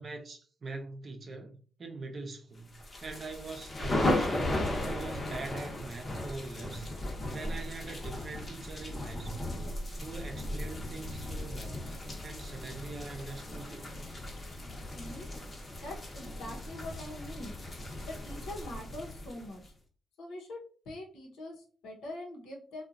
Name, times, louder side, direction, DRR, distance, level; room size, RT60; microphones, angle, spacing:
voice 1, 0.0-4.4 4.8-6.9 7.3-9.6 10.0-11.9 12.2-13.9, right 3 dB, 50° right, 0.6 m, -43 dB
sound 1, 2.7-19.7, left 1 dB, 35° left, 0.9 m, -36 dB
voice 2, 14.9-15.3 15.8-17.5 18.1-19.6 20.2-22.8, left 1 dB, 85° left, 0.9 m, -43 dB
2.8 x 2.3 x 2.4 m
supercardioid pair, 65°, 0 cm